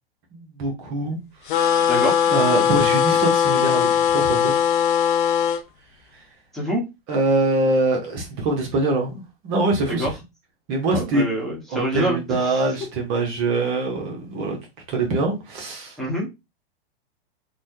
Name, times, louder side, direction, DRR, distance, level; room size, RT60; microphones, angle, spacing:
voice 1, 0.3-1.2 2.3-4.5 7.1-10.1 10.7-11.3 11.7-14.6 14.9-16.0, right 2 dB, 40° right, 1.0 m, -23 dB
sound 1, 1.5-5.6, left 8 dB, 55° left, 0.5 m, -19 dB
voice 2, 1.8-2.1 6.5-6.8 9.9-10.1 10.9-12.6 16.0-16.3, equal, ahead, 1.1 m, -26 dB
3.2 x 2.2 x 2.7 m
hypercardioid pair, 110°, 30 cm